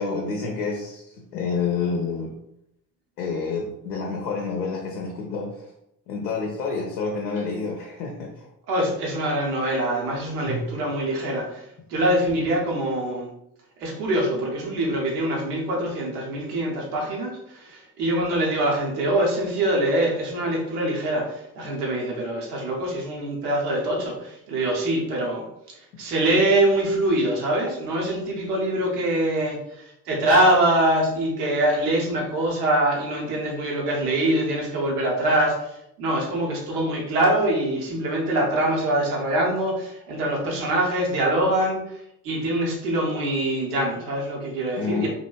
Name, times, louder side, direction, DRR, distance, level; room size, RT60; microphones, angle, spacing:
voice 1, 0.0-2.3 3.2-5.7 6.1-8.5 10.5-10.7 44.8-45.1, left 4 dB, 75° left, 0 dB, 0.5 m, -28 dB
voice 2, 8.7-13.3 13.8-45.1, right 1 dB, 75° right, -1 dB, 0.8 m, -24 dB
2.9 x 2.8 x 2.4 m, 0.81 s
figure-of-eight pair, 40°, 46 cm